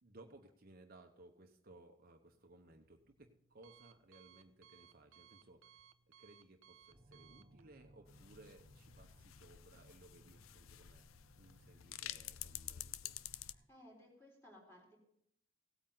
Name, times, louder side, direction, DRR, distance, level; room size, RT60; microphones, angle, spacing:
voice 1, 0.0-5.8 6.2-11.1 11.4-13.2, right 2 dB, 50° right, 4 dB, 1.0 m, -61 dB
Alarm, 2.2-8.6, right 8 dB, 80° right, 0.5 m, -66 dB
sound 1, 6.9-13.7, right 1 dB, 30° right, 1.1 m, -65 dB
sound 2, 8.1-13.5, left 12 dB, 90° left, 0.4 m, -50 dB
voice 2, 13.4-15.0, left 1 dB, 15° left, -1 dB, 4.1 m, -61 dB
17.0 x 8.8 x 3.9 m, 0.73 s
head